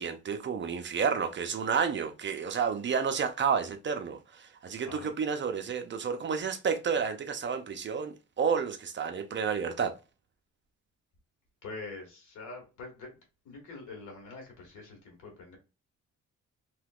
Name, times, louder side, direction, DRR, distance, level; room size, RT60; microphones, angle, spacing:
voice 1, 0.0-9.9, right 6 dB, 40° right, 0.6 m, -30 dB
voice 2, 11.6-13.1 13.5-15.6, left 3 dB, 85° left, 1.7 m, -44 dB
3.2 x 3.0 x 2.4 m
cardioid pair, 90°, 30 cm